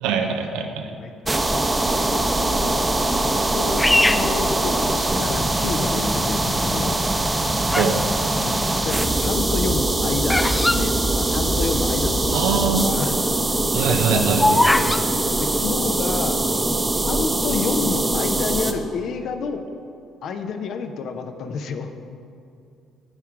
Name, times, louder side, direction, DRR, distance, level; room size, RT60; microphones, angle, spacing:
voice 1, 0.0-0.9 7.8-8.0 12.3-12.9 13.7-14.6, right 6 dB, 65° right, 5 dB, 0.8 m, -22 dB
voice 2, 0.8-1.1 1.5-2.8 3.5-7.0 8.4-13.1 13.7-14.7 15.4-19.6 20.2-21.9, left 5 dB, 55° left, 6 dB, 0.8 m, -30 dB
sound 1, 1.3-18.7, right 2 dB, 20° right, 1.0 m, -22 dB
Bird vocalization bird call bird song, 3.8-5.3 5.9-6.4 7.1-8.0 8.3-11.8 12.1-12.2 12.3-12.7 13.1-15.0, left 1 dB, 10° left, 0.5 m, -22 dB
17.0 x 5.8 x 4.8 m, 2.5 s
figure-of-eight pair, 45°, 0 cm